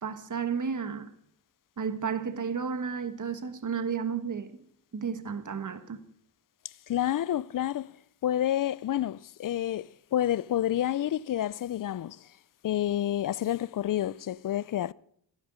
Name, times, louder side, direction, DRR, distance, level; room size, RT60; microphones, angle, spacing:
voice 1, 0.0-1.1 1.8-4.6 4.9-6.0, right 6 dB, 40° right, 1.5 m, -32 dB
voice 2, 6.9-7.9 8.2-12.3 12.6-14.9, left 12 dB, 45° left, 0.5 m, -29 dB
15.5 x 12.0 x 5.1 m
supercardioid pair, 55°, 47 cm